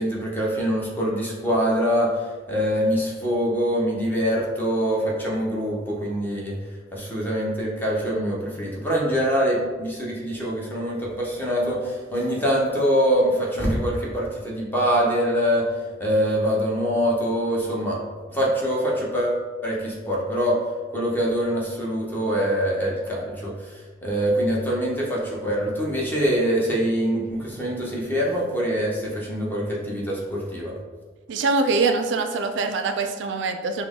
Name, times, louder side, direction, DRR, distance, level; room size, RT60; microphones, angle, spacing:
voice 1, 0.0-6.5 6.9-18.0 18.3-20.6 20.9-30.7, equal, 10° left, -4 dB, 0.9 m, -24 dB
voice 2, 31.3-33.8, right 3 dB, 75° right, 7 dB, 0.4 m, -23 dB
5.8 x 2.1 x 3.6 m, 1.4 s
head